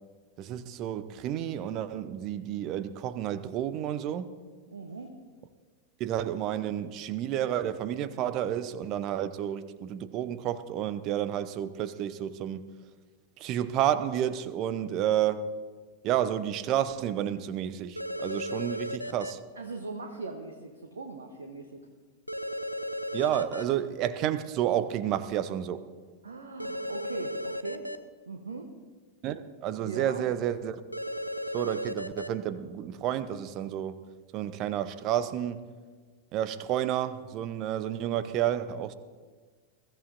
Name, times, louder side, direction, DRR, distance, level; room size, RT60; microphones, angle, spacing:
voice 1, 0.4-4.3 6.0-12.6 13.4-15.4 16.0-19.4 23.1-25.8 29.2-30.8 31.5-34.0 34.3-35.7 36.3-38.9, right 11 dB, 40° right, 0.8 m, -30 dB
voice 2, 4.7-5.1 19.6-21.9 26.2-27.9 28.3-28.7 29.8-30.2, right 3 dB, 70° right, 1.1 m, -40 dB
sound 1, 18.0-19.3 22.3-23.6 26.6-28.0 30.9-32.3, equal, 90° left, 0.6 m, -34 dB
22.0 x 14.0 x 2.7 m
figure-of-eight pair, 90°, 0 cm